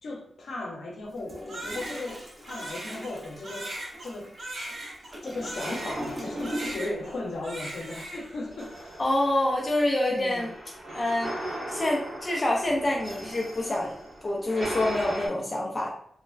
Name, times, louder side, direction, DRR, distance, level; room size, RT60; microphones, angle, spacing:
voice 1, 0.0-3.7 4.0-4.3 5.2-8.7 10.1-10.5, left 2 dB, 85° left, -1 dB, 0.6 m, -36 dB
Toilet flush, 1.1-7.1 7.3-7.6, equal, 25° right, 0.6 m, -40 dB
Crying sobbing, 1.5-6.2 6.4-7.2 7.4-8.4, right 1 dB, 85° right, 1.0 m, -39 dB
sound 1, 5.6-7.6 8.5-15.3, right 1 dB, 55° right, 1.2 m, -38 dB
voice 2, 9.0-10.5 10.9-14.0 14.2-15.9, left 1 dB, 30° left, -1 dB, 0.3 m, -27 dB
3.1 x 2.1 x 2.3 m, 0.66 s
wide cardioid pair, 175°, 0 cm